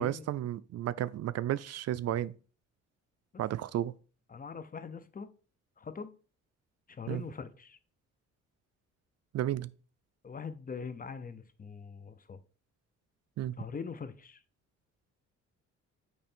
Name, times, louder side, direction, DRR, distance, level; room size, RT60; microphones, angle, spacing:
voice 1, 0.0-2.3 3.4-3.9 7.1-7.2 9.3-9.7 13.4-13.6, right 12 dB, 55° right, 0.4 m, -33 dB
voice 2, 4.3-5.3 5.8-6.1 6.9-7.8 10.2-12.4 13.6-14.4, left 5 dB, 30° left, 0.7 m, -42 dB
8.8 x 3.3 x 4.4 m
cardioid pair, 90°, 30 cm